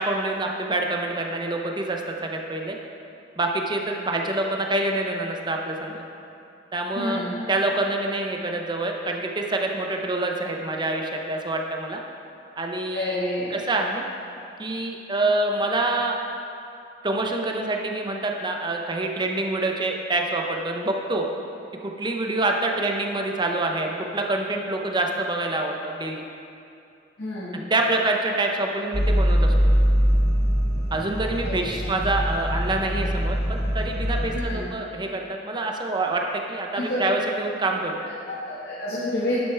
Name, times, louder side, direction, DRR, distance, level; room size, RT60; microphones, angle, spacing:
voice 1, 0.0-2.8 3.4-6.0 6.7-7.2 7.5-12.0 12.6-13.2 13.5-14.0 14.6-16.2 17.0-21.3 21.8-26.2 27.5-29.5 30.9-38.1, right 2 dB, 25° right, 2 dB, 0.7 m, -26 dB
voice 2, 6.9-7.3 12.9-13.9 27.2-27.6 31.4-31.6 34.3-34.6 36.7-37.0 38.3-39.4, left 1 dB, 60° left, -8 dB, 1.5 m, -29 dB
sound 1, 28.9-34.4, equal, 15° left, 0.8 m, -22 dB
11.5 x 6.7 x 3.4 m, 2.6 s
head